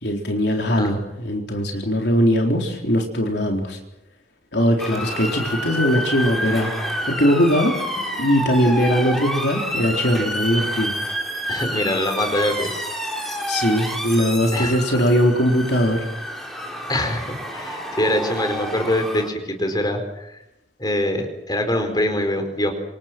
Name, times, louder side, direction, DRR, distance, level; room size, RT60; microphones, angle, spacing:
voice 1, 0.0-3.8 4.5-6.7 7.0-7.8 8.2-10.9 13.5-16.1, equal, 60° left, 1 dB, 4.1 m, -20 dB
voice 2, 0.7-1.0 11.5-12.7 14.5-14.8 16.9-20.4 20.8-22.7, left 1 dB, 20° left, 5 dB, 4.5 m, -24 dB
Motor vehicle (road) / Siren, 4.8-19.3, equal, ahead, 4.2 m, -28 dB
27.0 x 27.0 x 6.2 m, 0.89 s
head